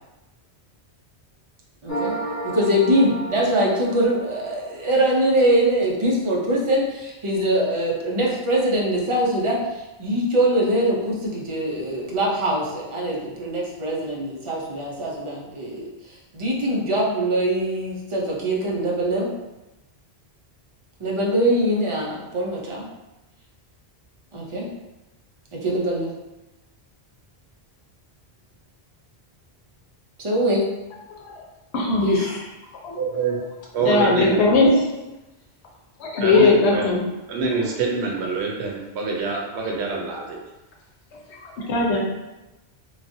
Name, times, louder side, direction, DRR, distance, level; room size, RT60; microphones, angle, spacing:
voice 1, 1.8-2.1 2.4-9.6 10.0-15.9 16.3-19.3 21.0-22.9 24.3-24.7 25.5-26.1 30.2-30.6 32.0-32.2 33.8-33.9, right 1 dB, 35° right, -4 dB, 0.5 m, -22 dB
sound 1, 1.9-5.3, right 2 dB, 25° left, 0.3 m, -32 dB
voice 2, 31.7-32.4 32.8-33.0 33.8-34.8 36.0-37.0 41.4-42.0, left 3 dB, 90° left, -1 dB, 0.9 m, -19 dB
voice 3, 33.0-33.4 33.7-34.4 36.2-36.8 37.3-40.4, right 4 dB, 90° right, -1 dB, 0.9 m, -25 dB
3.1 x 2.4 x 2.6 m, 1.0 s
omnidirectional pair, 1.1 m